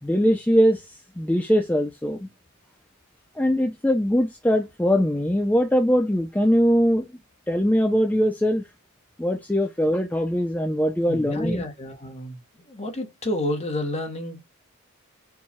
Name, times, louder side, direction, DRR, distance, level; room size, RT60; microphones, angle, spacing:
voice 1, 0.0-0.8 1.2-2.3 3.4-7.1 7.5-8.6 9.2-11.6, equal, 5° left, 0.4 m, -21 dB
voice 2, 11.1-12.4 12.7-14.4, left 1 dB, 30° left, 1.0 m, -30 dB
4.6 x 2.3 x 4.2 m
head